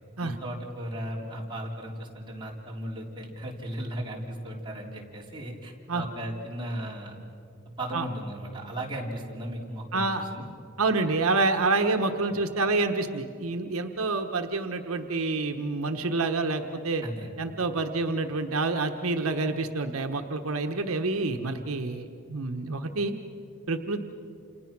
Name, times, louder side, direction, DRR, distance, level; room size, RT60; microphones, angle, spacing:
voice 1, 0.2-7.2 7.8-10.5 17.0-17.4, right 1 dB, 20° right, -3 dB, 3.8 m, -36 dB
voice 2, 9.9-10.2 10.8-17.0 17.4-23.1 23.7-24.0, right 3 dB, 80° right, 5 dB, 1.2 m, -28 dB
29.5 x 28.5 x 6.1 m, 2.6 s
head